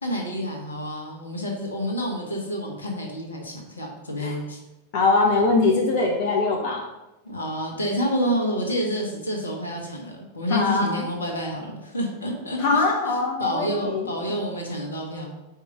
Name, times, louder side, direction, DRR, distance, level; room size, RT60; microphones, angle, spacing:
voice 1, 0.0-4.6 7.2-15.3, equal, 75° left, 1 dB, 1.6 m, -29 dB
voice 2, 4.9-6.8 10.5-11.0 12.6-14.1, left 3 dB, 45° left, -1 dB, 1.1 m, -22 dB
5.4 x 5.1 x 5.3 m, 0.99 s
figure-of-eight pair, 90°, 0 cm